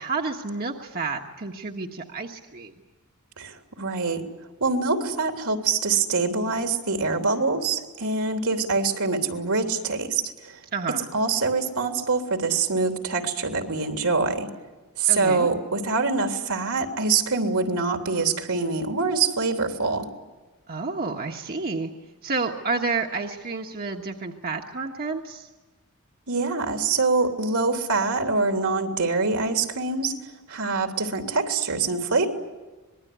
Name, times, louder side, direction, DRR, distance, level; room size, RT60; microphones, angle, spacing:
voice 1, 0.0-2.7 10.7-11.0 15.1-15.5 20.7-21.9 22.2-25.5, right 4 dB, 45° right, 2 dB, 1.5 m, -30 dB
voice 2, 3.4-4.2 4.6-10.6 11.1-14.5 15.0-20.1 26.3-30.2 30.5-32.3, right 4 dB, 75° right, 5 dB, 3.3 m, -24 dB
26.0 x 21.0 x 9.5 m, 1.2 s
head